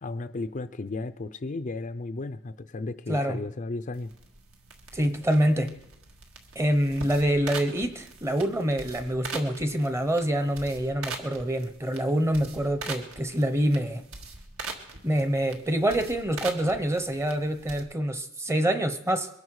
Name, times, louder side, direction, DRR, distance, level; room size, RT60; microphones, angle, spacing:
voice 1, 0.0-4.1, left 3 dB, 35° left, 8 dB, 0.5 m, -34 dB
voice 2, 3.1-3.4 4.9-5.7 6.5-14.0 15.0-19.3, right 1 dB, 15° right, 9 dB, 0.8 m, -26 dB
sound 1, 3.9-17.8, right 3 dB, 70° right, 1.9 m, -42 dB
22.5 x 12.0 x 4.8 m, 0.85 s
head